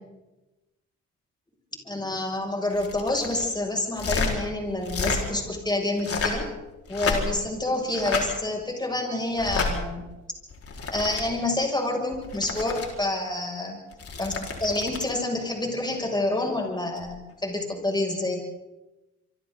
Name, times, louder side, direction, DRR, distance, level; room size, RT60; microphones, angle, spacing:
voice 1, 1.9-6.5 6.9-10.0 10.9-13.8 14.2-18.4, left 2 dB, 15° left, 1 dB, 7.3 m, -28 dB
sound 1, 2.7-3.5 3.9-4.3 4.8-5.2 5.9-6.5 6.9-7.5 7.9-8.3 9.3-9.7 10.5-11.2 12.1-12.9 13.9-15.1 17.0-17.1, left 4 dB, 50° left, 5.1 m, -30 dB
27.0 x 24.5 x 4.1 m, 1.0 s
cardioid pair, 90°, 30 cm